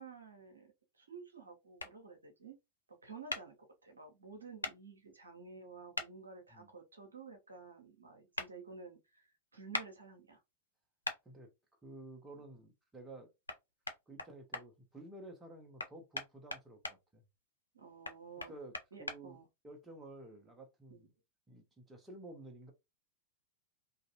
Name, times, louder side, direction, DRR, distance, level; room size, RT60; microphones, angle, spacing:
voice 1, 0.0-2.6 2.9-3.5 3.8-10.4 12.4-12.5 17.7-18.5 18.9-19.5 20.9-21.1, right 4 dB, 75° right, 0.7 m, -52 dB
sound 1, 1.8-1.9 3.3-3.4 4.6-4.8 5.9-6.1 8.4-8.5 9.7-9.9 11.0-11.2 13.5-13.6 13.9-14.6 15.8-17.0 18.0-19.2, left 2 dB, 80° left, 0.4 m, -39 dB
voice 2, 11.8-13.3 14.1-17.2 18.5-18.7 19.0-21.1 21.5-22.7, right 2 dB, 15° right, 0.7 m, -52 dB
2.6 x 2.4 x 2.6 m
figure-of-eight pair, 90°, 0 cm